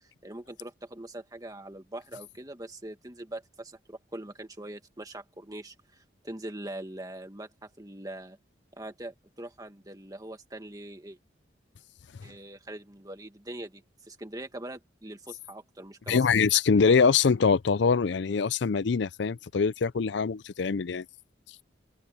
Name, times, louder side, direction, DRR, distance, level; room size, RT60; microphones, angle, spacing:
voice 1, 0.0-8.4 8.8-11.2 12.2-16.2, right 1 dB, 20° right, 1.8 m, -42 dB
voice 2, 16.1-21.0, left 5 dB, 65° left, 0.5 m, -23 dB
open air
head